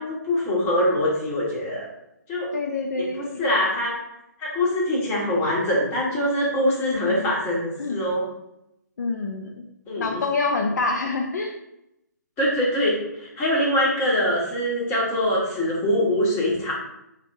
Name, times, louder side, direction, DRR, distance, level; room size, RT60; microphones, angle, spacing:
voice 1, 0.0-1.9 2.3-2.5 2.9-4.0 4.4-8.3 9.9-10.2 12.4-16.7, left 1 dB, 20° left, -5 dB, 1.5 m, -23 dB
voice 2, 2.5-3.4 7.8-8.0 9.0-9.6 10.0-11.5, left 3 dB, 60° left, 2 dB, 0.5 m, -26 dB
3.4 x 2.9 x 4.7 m, 0.85 s
figure-of-eight pair, 135°, 10 cm